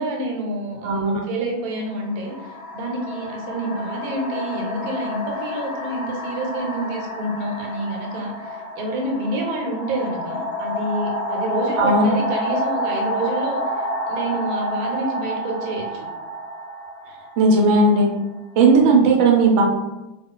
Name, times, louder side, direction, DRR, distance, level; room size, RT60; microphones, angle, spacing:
voice 1, 0.0-2.3 2.7-16.1 18.9-19.2, right 1 dB, 90° right, 1 dB, 1.1 m, -28 dB
sound 1, 0.8-1.0 1.9-18.6, equal, 55° left, 0.8 m, -29 dB
voice 2, 0.8-1.2 11.8-12.0 17.4-18.1 18.6-19.6, right 3 dB, 65° right, 0 dB, 0.8 m, -16 dB
2.4 x 2.3 x 3.7 m, 1.0 s
omnidirectional pair, 1.5 m